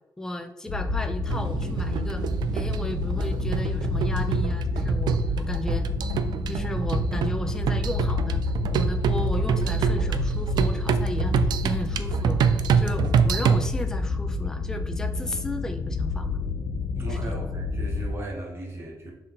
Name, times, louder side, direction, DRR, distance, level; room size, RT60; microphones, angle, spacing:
voice 1, 0.2-2.2 2.5-5.9 6.5-8.4 8.7-12.5 12.8-16.3 17.1-17.4, left 1 dB, 10° left, 6 dB, 0.4 m, -34 dB
sound 1, 0.7-18.1, left 3 dB, 80° left, 1.0 m, -29 dB
sound 2, 1.3-13.7, right 7 dB, 90° right, 0.4 m, -26 dB
voice 2, 16.9-19.1, right 2 dB, 35° right, -1 dB, 1.5 m, -36 dB
6.5 x 3.8 x 3.8 m, 0.96 s
wide cardioid pair, 165°, 7 cm